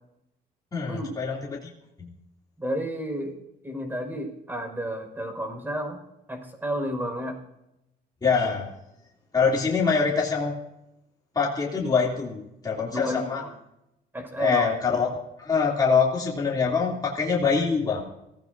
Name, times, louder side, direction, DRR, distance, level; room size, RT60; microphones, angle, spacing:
voice 1, 0.7-1.7 2.0-2.1 8.2-8.7 9.3-10.5 11.3-13.4 14.4-18.0, left 5 dB, 20° left, -4 dB, 2.9 m, -24 dB
voice 2, 2.6-3.4 3.6-6.0 6.3-7.4 12.9-13.5 14.1-14.7, equal, 10° right, 3 dB, 5.2 m, -31 dB
23.0 x 16.0 x 2.7 m, 0.87 s
cardioid pair, 110°, 17 cm